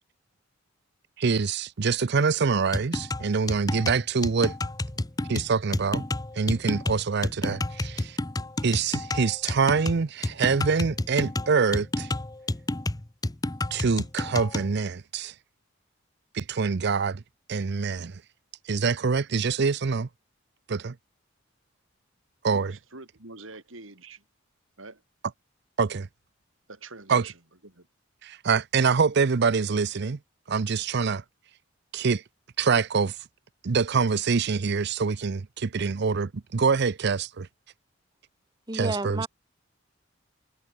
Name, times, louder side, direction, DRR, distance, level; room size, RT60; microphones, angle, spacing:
voice 1, 1.2-4.5 5.3-6.1 6.4-8.2 8.6-12.1 13.7-15.3 16.3-17.2 17.5-18.2 18.7-20.1 20.7-21.0 22.4-22.8 25.8-26.1 27.1-27.3 28.2-30.2 30.5-31.2 31.9-32.2 32.6-33.2 33.6-37.5 38.7-39.3, right 5 dB, 55° right, 0.6 m, -25 dB
sound 1, 2.7-14.7, left 2 dB, 20° left, 0.8 m, -30 dB
voice 2, 22.5-24.2 24.8-25.0 26.7-27.9, right 3 dB, 85° right, 5.0 m, -45 dB
voice 3, 38.7-39.3, right 2 dB, 20° right, 2.1 m, -30 dB
head